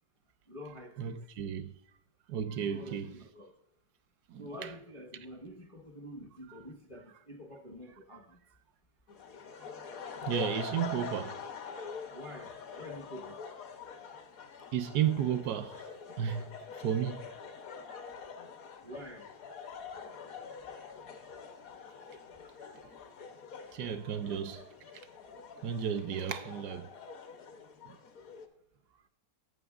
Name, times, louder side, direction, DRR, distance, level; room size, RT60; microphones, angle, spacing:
voice 1, 0.5-1.1 2.6-3.5 4.4-8.4 12.1-13.4 18.8-19.3, equal, 30° left, 0.6 m, -47 dB
voice 2, 1.0-1.7 2.3-3.1 4.3-4.7 10.2-11.4 14.7-15.8 16.2-16.5 16.8-17.3 23.7-24.6 25.6-26.9 27.8-28.0, right 9 dB, 75° right, 1.0 m, -33 dB
sound 1, 9.1-28.5, left 5 dB, 60° left, 1.2 m, -45 dB
17.0 x 5.8 x 2.4 m
omnidirectional pair, 1.8 m